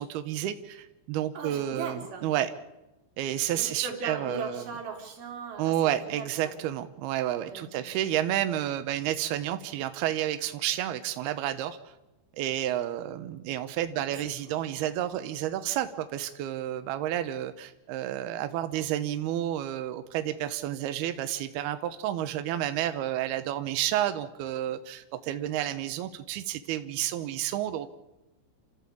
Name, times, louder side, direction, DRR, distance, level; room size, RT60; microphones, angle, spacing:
voice 1, 0.0-2.5 3.2-4.6 5.6-11.8 12.3-27.9, right 12 dB, 75° right, 9 dB, 2.4 m, -30 dB
voice 2, 1.3-2.3 3.5-6.6 7.4-8.0 14.0-14.2 14.5-14.8, right 5 dB, 50° right, 3 dB, 5.1 m, -39 dB
28.5 x 15.0 x 8.5 m, 1.0 s
omnidirectional pair, 5.7 m